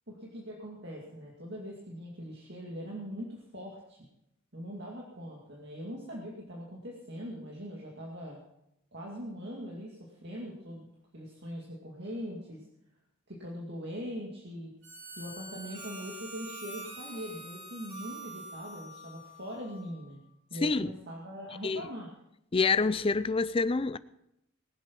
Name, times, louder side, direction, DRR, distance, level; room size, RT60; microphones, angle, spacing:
voice 1, 0.1-4.1 4.5-8.4 8.9-10.9 11.1-12.6 13.3-14.7 15.2-20.2 20.5-22.1, equal, 55° right, 2.2 m, -41 dB
Harmonica, 14.8-20.0, right 2 dB, 70° right, 7.0 m, -45 dB
voice 2, 20.6-20.9 21.6-21.8 22.5-24.0, left 4 dB, 25° left, 0.4 m, -27 dB
20.0 x 7.7 x 6.0 m
head